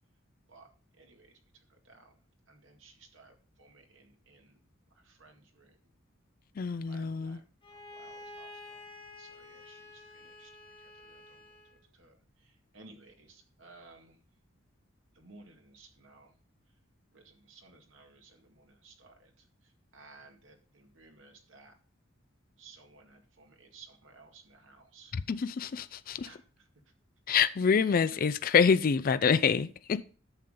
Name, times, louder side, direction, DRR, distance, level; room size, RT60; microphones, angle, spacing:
voice 1, 0.9-2.2 2.5-5.8 6.8-7.4 7.7-8.8 9.2-11.4 11.7-14.2 15.1-16.3 17.1-21.7 22.6-25.1 26.2-26.7, right 3 dB, 70° right, 2.0 m, -57 dB
voice 2, 6.6-7.4 25.1-26.3 27.3-30.0, left 6 dB, 45° left, 0.4 m, -26 dB
Bowed string instrument, 7.6-11.8, left 2 dB, 25° left, 2.5 m, -50 dB
11.0 x 6.9 x 3.8 m
head